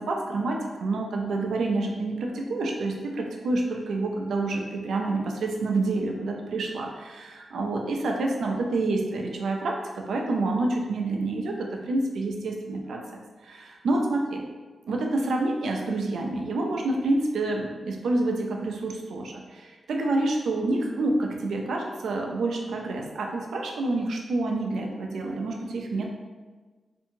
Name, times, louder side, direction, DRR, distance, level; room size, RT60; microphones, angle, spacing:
voice 1, 0.0-14.4 14.9-26.1, right 2 dB, 90° right, 1 dB, 0.4 m, -28 dB
2.7 x 2.6 x 2.7 m, 1.3 s
wide cardioid pair, 130°, 0 cm